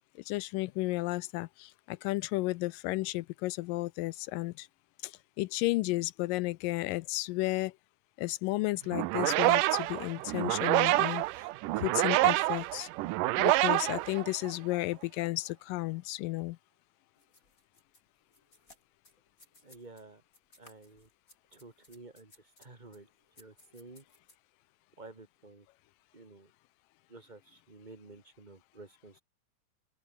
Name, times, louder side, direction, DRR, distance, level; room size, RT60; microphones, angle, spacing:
voice 1, 0.2-4.7 5.0-7.8 8.2-11.2 11.8-12.9 13.4-16.6, left 20 dB, 80° left, 2.1 m, -33 dB
sound 1, 8.9-14.8, right 19 dB, 80° right, 2.1 m, -27 dB
sound 2, 17.2-20.0 20.3-24.4, left 2 dB, 20° left, 6.8 m, -62 dB
voice 2, 19.6-20.2 20.6-21.1 21.5-23.1 23.4-24.0 25.0-25.7 26.1-26.5 27.1-29.2, right 3 dB, 15° right, 2.2 m, -52 dB
open air
omnidirectional pair, 4.1 m